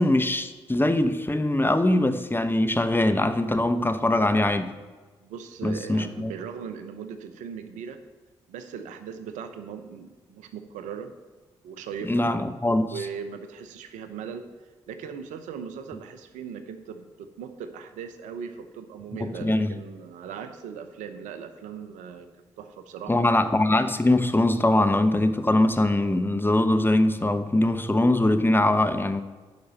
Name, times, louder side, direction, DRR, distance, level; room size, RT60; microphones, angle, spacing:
voice 1, 0.0-4.7 5.6-6.3 12.1-12.9 19.2-19.8 23.1-29.2, left 1 dB, 15° left, 9 dB, 1.0 m, -22 dB
voice 2, 5.2-8.0 8.5-11.1 11.6-12.3 12.9-14.4 14.9-22.3 22.6-23.3, right 7 dB, 80° right, 9 dB, 0.8 m, -38 dB
10.5 x 5.2 x 7.0 m, 1.3 s
hypercardioid pair, 40°, 13 cm